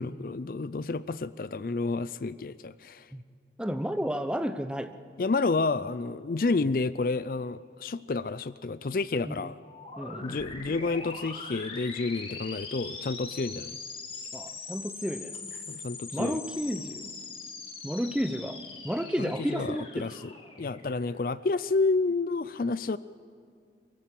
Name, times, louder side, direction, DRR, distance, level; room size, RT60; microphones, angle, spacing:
voice 1, 0.0-3.1 5.2-9.6 10.2-13.8 15.7-16.4 19.2-20.3 20.6-23.0, left 3 dB, 50° left, 16 dB, 0.4 m, -30 dB
voice 2, 3.6-4.9 9.2-9.4 10.0-10.4 14.3-15.5 16.1-17.1 17.8-20.1, equal, 5° right, 9 dB, 0.8 m, -32 dB
sound 1, 9.6-21.3, left 4 dB, 30° left, 2.1 m, -42 dB
24.0 x 15.0 x 8.5 m, 2.3 s
head